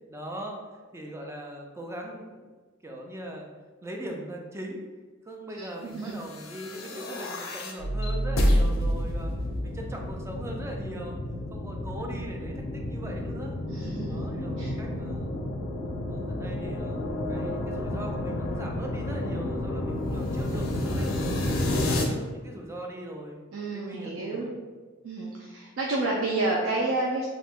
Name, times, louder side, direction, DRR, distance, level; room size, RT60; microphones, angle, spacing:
voice 1, 0.1-0.6 0.9-2.5 2.8-3.5 3.8-4.8 5.2-9.3 9.6-11.2 11.5-13.5 14.1-15.3 16.1-21.1 21.5-23.4 23.7-24.6, right 1 dB, 15° right, 1 dB, 0.3 m, -40 dB
voice 2, 5.6-6.1 13.7-14.3 14.6-14.7 16.4-16.6 23.5-24.5 25.0-27.3, right 2 dB, 90° right, -3 dB, 0.4 m, -30 dB
sound 1, 6.3-22.0, left 1 dB, 85° left, 0.5 m, -30 dB
2.4 x 2.1 x 3.4 m, 1.3 s
head